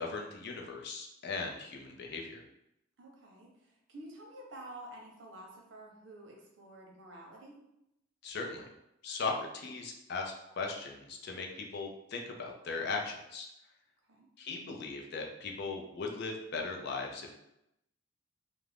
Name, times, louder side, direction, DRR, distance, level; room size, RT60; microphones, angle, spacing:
voice 1, 0.0-2.4 8.2-8.7 9.0-13.5 14.4-17.3, left 4 dB, 65° left, 1 dB, 0.5 m, -38 dB
voice 2, 3.0-7.6 14.1-14.3, right 1 dB, 80° right, 0 dB, 0.7 m, -50 dB
2.4 x 2.1 x 3.3 m, 0.84 s
head